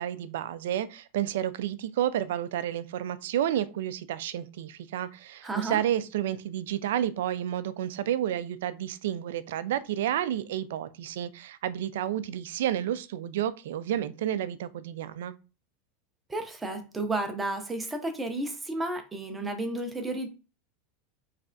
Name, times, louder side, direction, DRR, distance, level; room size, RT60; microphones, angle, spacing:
voice 1, 0.0-15.3, right 11 dB, 75° right, 0.4 m, -30 dB
voice 2, 5.4-5.8 16.3-20.3, right 2 dB, 10° right, 0.6 m, -32 dB
4.6 x 3.2 x 2.5 m
supercardioid pair, 170°, 0 cm